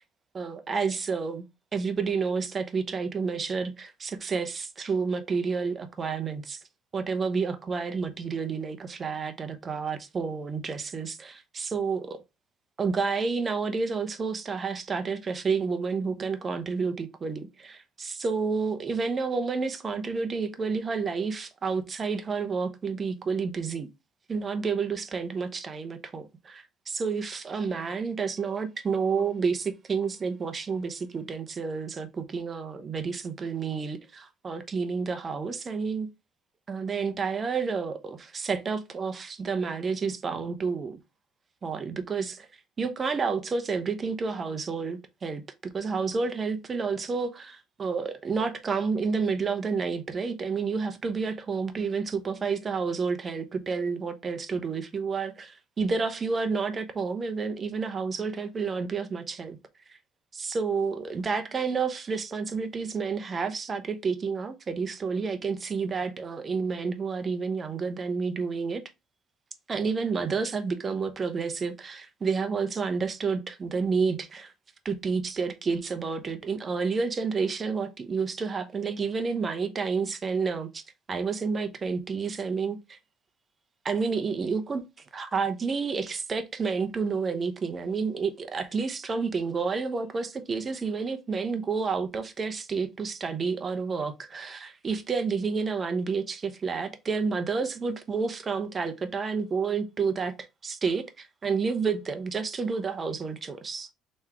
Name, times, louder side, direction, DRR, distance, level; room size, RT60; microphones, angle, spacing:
voice 1, 0.3-1.4 1.7-6.6 6.9-12.2 12.8-23.9 24.3-36.1 36.7-41.0 41.6-42.5 42.8-45.4 45.7-59.6 59.9-60.0 60.3-68.8 69.7-74.5 74.8-80.8 81.1-83.0 83.8-84.8 85.1-100.3 100.6-103.9, right 5 dB, 35° right, 0.8 m, -30 dB
3.6 x 3.2 x 4.5 m
supercardioid pair, 80°, 0 cm